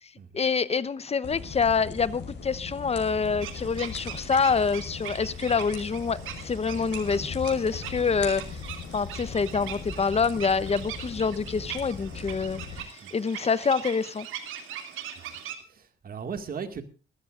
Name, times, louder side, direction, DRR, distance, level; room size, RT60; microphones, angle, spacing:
voice 1, 0.3-8.4 8.9-12.6 12.9-14.3, left 5 dB, 30° left, 0.9 m, -26 dB
sound 1, 1.2-12.8, left 5 dB, 60° left, 5.8 m, -39 dB
sound 2, 3.4-15.6, right 9 dB, 90° right, 2.7 m, -41 dB
voice 2, 15.7-16.8, right 6 dB, 50° right, 2.1 m, -38 dB
21.0 x 14.5 x 2.6 m
cardioid pair, 90°, 20 cm